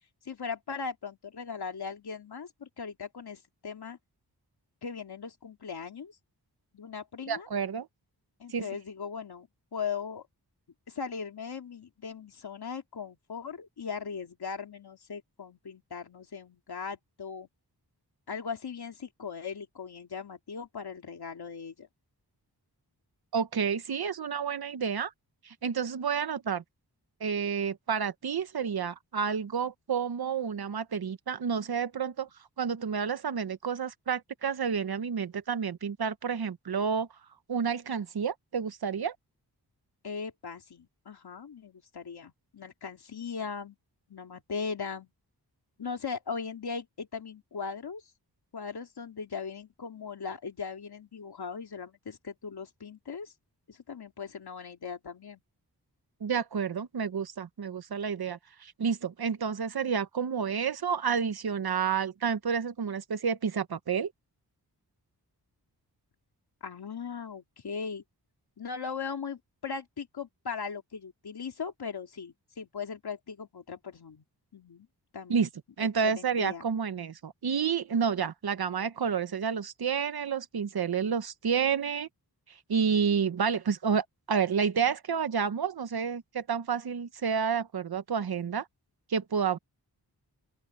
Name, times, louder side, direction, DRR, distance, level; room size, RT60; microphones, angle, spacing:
voice 1, 0.2-4.0 4.8-6.2 6.7-7.5 8.4-10.3 10.9-17.5 18.3-21.9 40.0-43.8 44.1-45.1 45.8-48.0 48.5-53.3 53.7-55.4 66.6-68.0 68.6-74.2 74.5-74.9 75.1-75.4 75.8-76.7, left 5 dB, 70° left, 2.9 m, -39 dB
voice 2, 7.3-7.9 8.5-8.6 23.3-25.1 25.4-26.6 27.2-32.3 32.6-37.1 37.5-39.1 56.2-64.1 75.3-75.5 75.8-82.1 82.7-88.7 89.1-89.6, right 6 dB, 70° right, 1.1 m, -30 dB
open air
wide cardioid pair, 120°, 39 cm